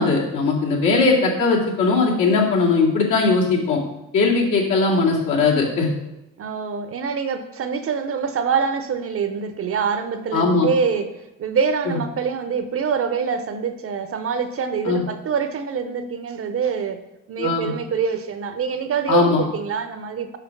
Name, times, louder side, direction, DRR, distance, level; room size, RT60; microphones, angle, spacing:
voice 1, 0.0-3.8 4.1-5.9 10.3-10.7 11.9-12.0 14.8-15.0 17.4-17.7 19.1-19.4, left 4 dB, 65° left, -3 dB, 2.3 m, -19 dB
voice 2, 6.4-11.1 11.4-17.0 17.3-20.4, right 6 dB, 40° right, 8 dB, 0.8 m, -25 dB
5.9 x 4.7 x 6.0 m, 0.96 s
supercardioid pair, 85°, 34 cm